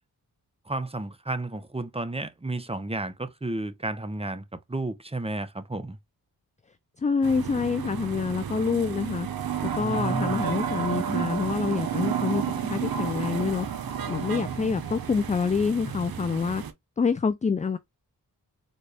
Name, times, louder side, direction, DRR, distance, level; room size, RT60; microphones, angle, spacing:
voice 1, 0.7-6.0 9.8-10.5, right 2 dB, 15° right, 0.8 m, -32 dB
voice 2, 7.0-9.3 9.6-13.7 14.1-16.6 17.0-17.8, left 5 dB, 20° left, 0.4 m, -27 dB
sound 1, 7.2-16.7, right 8 dB, 65° right, 0.8 m, -31 dB
4.1 x 2.4 x 3.3 m
cardioid pair, 40°, 39 cm